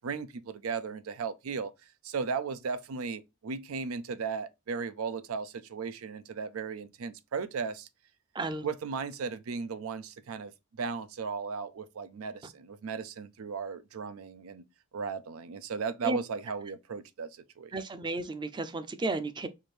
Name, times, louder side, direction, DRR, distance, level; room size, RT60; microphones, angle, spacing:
voice 1, 0.0-7.9 8.6-14.6 14.9-17.7, right 5 dB, 90° right, 0.5 m, -36 dB
voice 2, 8.3-8.7 16.0-16.2 17.7-19.5, right 2 dB, 20° right, 0.4 m, -33 dB
4.6 x 2.6 x 3.1 m
head